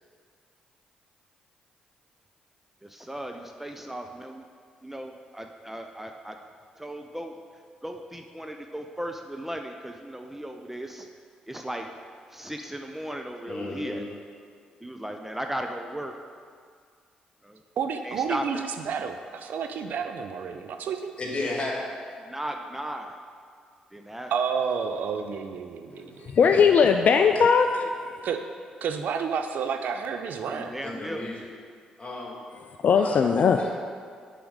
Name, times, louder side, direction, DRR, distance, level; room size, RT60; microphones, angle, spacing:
voice 1, 2.8-4.5 4.8-6.4 6.8-7.4 7.8-11.1 11.5-11.9 12.3-14.1 14.8-16.2 17.4-17.6 18.0-18.6 22.2-23.2 23.9-24.3 30.7-31.2, right 1 dB, 10° right, 4 dB, 0.6 m, -36 dB
voice 2, 13.5-14.0 21.2-21.9 30.4-31.4 32.0-32.4 32.9-33.3 33.6-33.7, left 2 dB, 35° left, -2 dB, 2.1 m, -33 dB
voice 3, 17.8-21.1 24.3-26.3 28.2-28.4 28.8-30.7, right 6 dB, 65° right, 6 dB, 0.5 m, -30 dB
voice 4, 26.3-27.9 32.8-33.6, left 6 dB, 55° left, 6 dB, 0.4 m, -19 dB
6.1 x 5.0 x 6.3 m, 2.1 s
hypercardioid pair, 45°, 3 cm